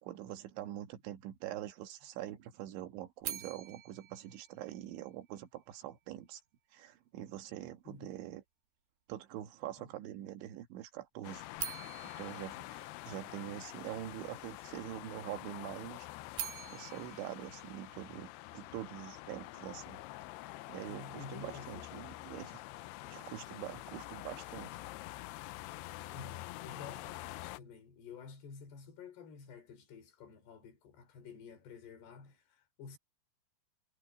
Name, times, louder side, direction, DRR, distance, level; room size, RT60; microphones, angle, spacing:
voice 1, 0.0-6.4 6.7-8.4 9.1-11.4 12.2-16.1 16.7-20.0 20.4-22.6 23.1-24.8, right 13 dB, 90° right, 3.9 m, -44 dB
sound 1, 3.2-5.4 11.5-13.7 16.1-18.5, right 9 dB, 65° right, 3.8 m, -45 dB
voice 2, 7.9-8.2 9.8-9.9 20.9-22.1 23.0-23.8 26.1-33.0, left 5 dB, 65° left, 5.5 m, -51 dB
sound 2, 11.2-27.6, left 18 dB, 80° left, 2.5 m, -47 dB
omnidirectional pair, 5.2 m